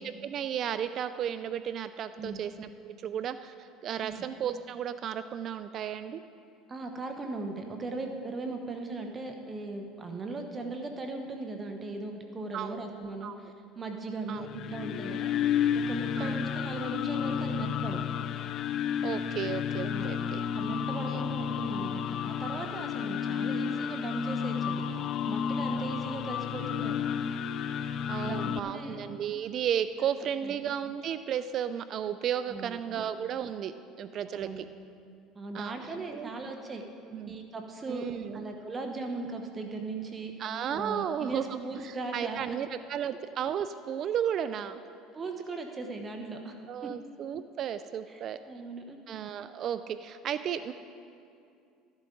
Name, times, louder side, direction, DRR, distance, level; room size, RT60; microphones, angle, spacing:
voice 1, 0.0-6.2 12.5-12.8 13.2-13.3 14.3-14.5 16.2-16.4 19.0-20.4 21.0-21.2 28.1-34.7 35.5-36.3 37.1-37.3 37.9-38.4 40.4-44.8 46.7-48.4 49.1-50.7, right 9 dB, 50° right, 12 dB, 0.3 m, -34 dB
voice 2, 6.7-18.1 19.9-26.9 28.2-29.0 30.4-30.6 32.5-33.0 34.3-34.6 35.3-36.8 37.3-38.1 38.3-40.3 40.7-42.4 45.1-46.6 46.8-46.9 48.1-49.0, right 3 dB, 25° right, 4 dB, 1.0 m, -38 dB
sound 1, 14.3-28.6, left 8 dB, 50° left, 0.4 m, -31 dB
14.0 x 11.0 x 3.8 m, 2.5 s
supercardioid pair, 105°, 0 cm